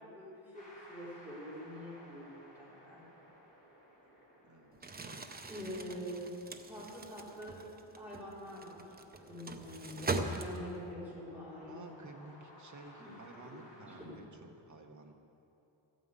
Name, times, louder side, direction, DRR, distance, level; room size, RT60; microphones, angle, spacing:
voice 1, 0.0-3.1 4.1-4.3 5.5-6.3 6.7-7.6 8.0-8.9 9.3-11.7 13.0-13.1 13.4-13.5 13.9-14.1, equal, 5° right, -9 dB, 4.2 m, -45 dB
sound 1, 0.5-14.1, equal, 15° left, 3.5 m, -59 dB
voice 2, 4.4-4.9 11.7-15.1, right 3 dB, 40° right, 3 dB, 1.2 m, -53 dB
Crumpling crinkling, 4.7-10.9, right 3 dB, 20° right, 0.6 m, -41 dB
13.5 x 9.3 x 8.3 m, 2.9 s
wide cardioid pair, 180°, 46 cm